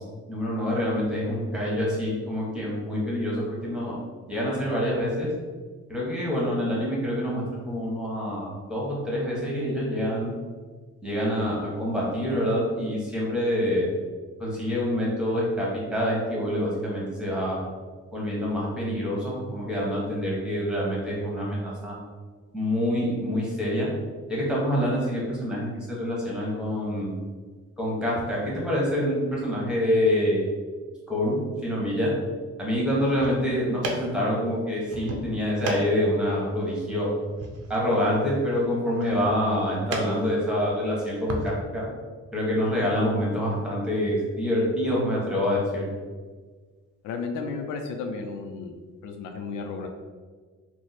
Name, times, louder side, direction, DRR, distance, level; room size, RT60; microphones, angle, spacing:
voice 1, 0.3-4.0 4.3-5.3 5.9-10.3 11.0-13.9 14.4-17.6 18.1-21.9 22.5-23.9 24.3-27.2 27.8-30.5 31.1-32.1 32.6-37.1 37.7-41.9 42.3-45.9, equal, 5° right, -5 dB, 1.2 m, -26 dB
sound 1, 32.9-41.5, right 1 dB, 55° right, 0.6 m, -37 dB
voice 2, 47.0-48.8 49.0-49.9, left 4 dB, 80° left, 4 dB, 0.5 m, -33 dB
3.0 x 2.1 x 4.0 m, 1.5 s
cardioid pair, 90°, 30 cm